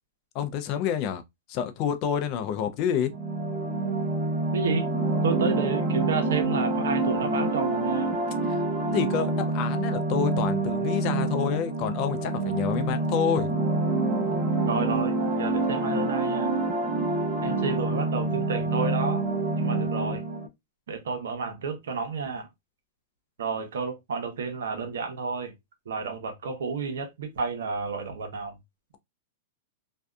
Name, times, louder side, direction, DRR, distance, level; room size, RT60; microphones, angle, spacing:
voice 1, 0.3-1.2 1.5-3.1 8.4-8.6 8.9-13.6, left 8 dB, 40° left, 0.4 m, -28 dB
sound 1, 3.1-20.5, right 2 dB, 20° right, 0.7 m, -27 dB
voice 2, 4.5-4.9 5.2-8.1 14.7-16.5 17.4-19.3 19.6-20.2 20.9-22.5 23.4-25.5 25.9-28.6, right 5 dB, 80° right, 0.8 m, -31 dB
2.6 x 2.3 x 2.3 m
hypercardioid pair, 135°, 0 cm